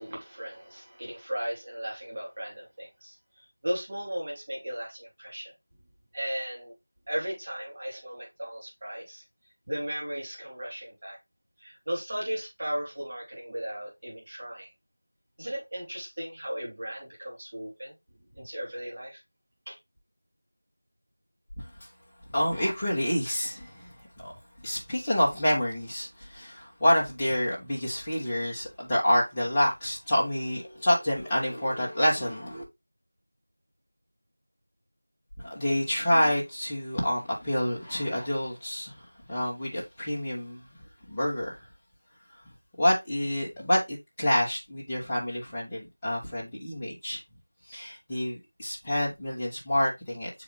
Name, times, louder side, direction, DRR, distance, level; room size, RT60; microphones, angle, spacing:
voice 1, 0.0-3.2 3.6-5.5 6.1-6.7 7.1-9.2 9.7-11.2 11.6-14.7 15.4-17.9 18.3-19.2 19.7-19.8, equal, 30° right, 3.0 m, -36 dB
voice 2, 22.3-24.3 24.6-32.6 35.4-40.6 41.1-41.6 42.8-47.2 47.7-50.3, left 1 dB, 10° left, 1.4 m, -28 dB
6.9 x 4.8 x 3.1 m
figure-of-eight pair, 175°, 0 cm